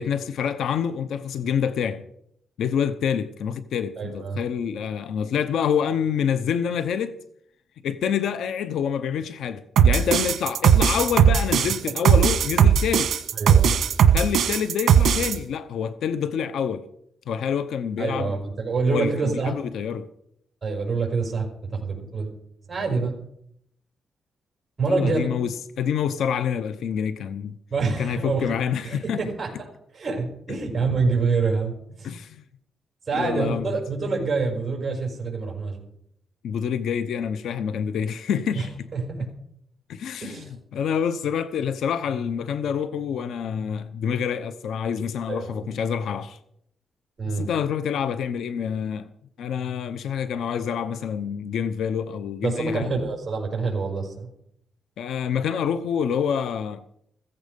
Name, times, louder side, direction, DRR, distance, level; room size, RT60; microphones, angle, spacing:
voice 1, 0.0-2.1 2.6-7.2 7.8-13.2 14.1-16.9 17.3-18.3 18.9-20.1 24.8-27.5 28.0-29.2 32.0-32.4 33.1-33.7 36.4-38.7 39.2-39.3 39.9-46.4 47.3-49.1 49.4-52.9 55.0-56.8, left 7 dB, 85° left, 0.8 m, -27 dB
voice 2, 4.0-4.4 11.8-11.9 13.4-13.7 18.0-19.6 20.6-22.3 22.7-23.1 24.8-25.2 27.7-28.6 28.8-29.7 29.9-32.1 33.1-35.8 38.6-38.7 38.9-39.3 40.2-40.5 45.3-45.6 47.2-47.5 52.4-54.3, right 4 dB, 30° right, 5.1 m, -26 dB
sound 1, 9.8-15.3, right 8 dB, 75° right, 1.3 m, -18 dB
15.5 x 15.0 x 5.3 m
cardioid pair, 115°, 0 cm